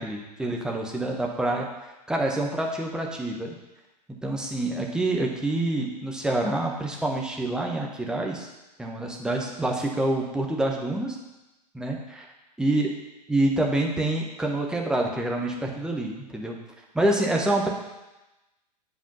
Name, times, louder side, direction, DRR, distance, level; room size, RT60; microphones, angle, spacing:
voice 1, 0.0-1.7 2.1-3.5 4.2-8.5 8.8-11.2 11.7-12.3 12.6-12.9 13.3-16.6 16.9-17.7, right 1 dB, 5° right, 0 dB, 1.1 m, -27 dB
8.1 x 5.0 x 5.3 m, 1.0 s
figure-of-eight pair, 100°, 21 cm